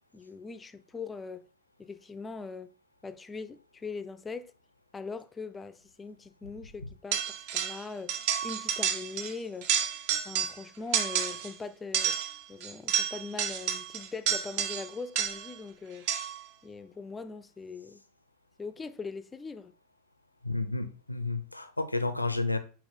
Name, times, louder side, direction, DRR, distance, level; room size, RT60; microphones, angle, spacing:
voice 1, 0.1-1.5 1.8-2.7 3.0-4.5 4.9-9.7 10.2-12.2 12.5-16.1 16.6-18.0 18.6-19.7, left 4 dB, 15° left, 0.4 m, -41 dB
sound 1, 7.1-7.8 8.1-9.3 9.6-10.6 10.9-11.5 11.9-15.6 16.1-16.5, right 8 dB, 45° right, 0.7 m, -30 dB
voice 2, 20.4-22.6, left 3 dB, 85° left, 0.6 m, -31 dB
6.0 x 4.5 x 3.8 m
figure-of-eight pair, 90°, 0 cm